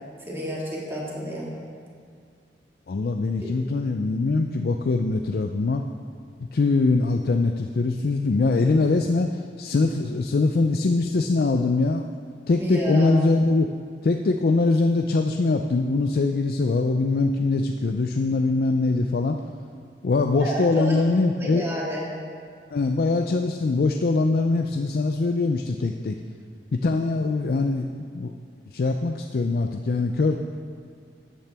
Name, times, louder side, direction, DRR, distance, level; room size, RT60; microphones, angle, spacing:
voice 1, 0.3-1.6 3.4-3.5 12.6-13.2 20.3-21.0 21.4-22.1, right 1 dB, 15° right, -5 dB, 1.9 m, -30 dB
voice 2, 2.9-5.8 6.5-12.0 12.5-13.7 14.0-19.4 20.0-21.6 22.7-26.2 26.7-28.3 28.7-30.4, left 3 dB, 55° left, 5 dB, 0.4 m, -22 dB
13.5 x 8.6 x 3.4 m, 2.1 s
head